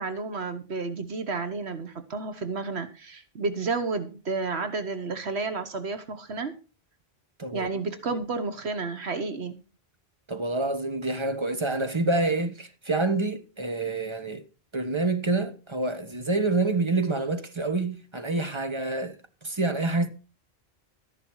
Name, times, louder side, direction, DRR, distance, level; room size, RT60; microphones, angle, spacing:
voice 1, 0.0-6.5 7.5-9.6, right 4 dB, 85° right, 1.6 m, -31 dB
voice 2, 10.3-14.4 14.7-19.2 19.4-20.1, right 2 dB, 25° right, 1.2 m, -27 dB
13.5 x 10.5 x 4.7 m
omnidirectional pair, 1.1 m